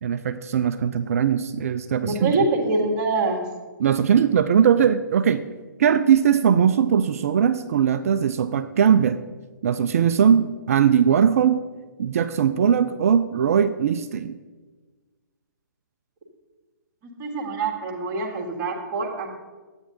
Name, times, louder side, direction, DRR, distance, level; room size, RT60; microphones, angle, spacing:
voice 1, 0.0-2.3 3.8-5.4 5.8-9.2 9.6-11.6 12.0-14.3, right 8 dB, 45° right, 10 dB, 0.3 m, -20 dB
voice 2, 2.0-3.4 17.2-19.3, right 3 dB, 25° right, 1 dB, 1.7 m, -25 dB
12.0 x 8.6 x 2.8 m, 1.3 s
figure-of-eight pair, 130°, 11 cm